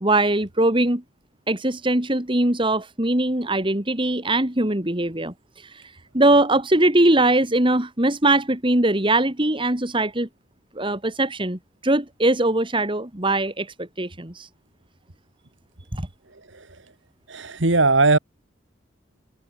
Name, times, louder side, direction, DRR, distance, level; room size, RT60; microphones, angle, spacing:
voice 1, 0.0-1.0 1.5-10.3 10.8-14.5 15.9-16.1, right 2 dB, 25° right, 2.6 m, -21 dB
voice 2, 17.3-18.2, right 3 dB, 75° right, 2.3 m, -18 dB
head